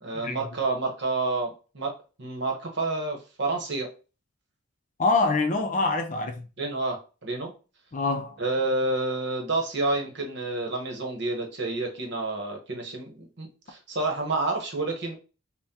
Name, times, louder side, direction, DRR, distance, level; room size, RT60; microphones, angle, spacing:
voice 1, 0.0-3.9 6.6-7.5 8.4-15.2, right 2 dB, 55° right, 1.0 m, -29 dB
voice 2, 5.0-6.5 7.9-8.4, left 3 dB, 40° left, 0.5 m, -25 dB
5.5 x 2.1 x 2.8 m
head